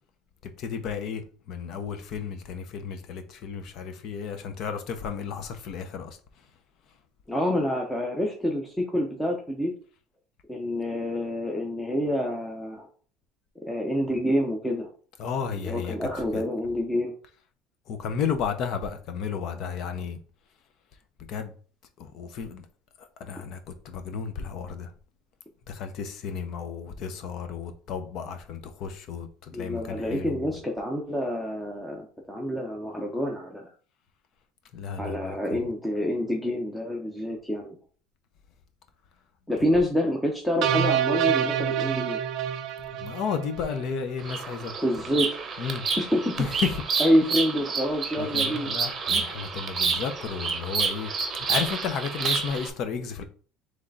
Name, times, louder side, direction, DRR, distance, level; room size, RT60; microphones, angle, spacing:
voice 1, 0.6-1.2 1.5-6.2 15.2-16.0 16.3-16.4 17.9-20.2 21.3-21.5 22.0-22.6 23.2-23.6 23.8-24.9 25.7-30.4 34.7-35.4 42.9-44.7 45.6-45.8 46.4-46.7 48.2-53.2, left 6 dB, 55° left, 0.7 m, -33 dB
voice 2, 7.3-9.7 10.5-12.9 13.6-14.9 15.6-17.2 29.5-33.7 35.0-37.8 39.5-42.2 44.8-45.4 46.0-46.4 47.0-48.7 49.1-49.2, equal, 5° left, 0.7 m, -27 dB
sound 1, 40.6-43.9, right 9 dB, 60° right, 0.4 m, -27 dB
Bird vocalization bird call bird song, 44.2-52.7, right 5 dB, 30° right, 0.8 m, -29 dB
3.7 x 3.3 x 3.9 m
cardioid pair, 130°, 0 cm